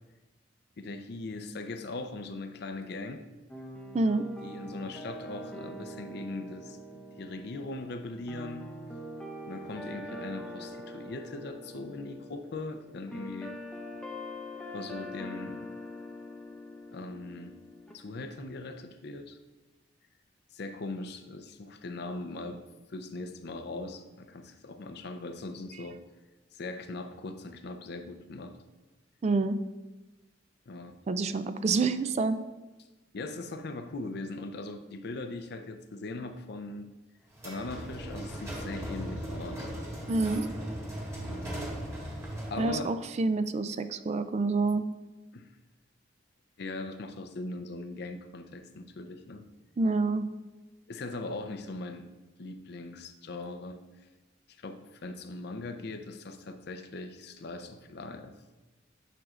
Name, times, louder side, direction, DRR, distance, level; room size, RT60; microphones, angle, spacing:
voice 1, 0.8-3.3 4.4-8.7 9.5-13.6 14.7-15.7 16.9-17.6 17.9-19.4 20.5-22.6 22.9-26.0 26.5-28.6 30.7-31.0 33.1-36.9 37.4-39.7 41.3-41.7 42.5-43.0 45.3-45.5 46.6-49.5 50.9-52.1 52.4-53.8 54.6-58.4, left 2 dB, 60° left, 8 dB, 0.5 m, -40 dB
sound 1, 3.5-17.9, equal, 5° left, 0.7 m, -43 dB
voice 2, 3.9-4.2 29.2-29.6 31.1-32.4 40.1-40.5 42.6-44.8 49.8-50.3, right 3 dB, 35° right, 11 dB, 0.3 m, -27 dB
sound 2, 37.3-42.8, right 1 dB, 15° right, 1.6 m, -38 dB
9.1 x 6.2 x 2.4 m, 1.1 s
head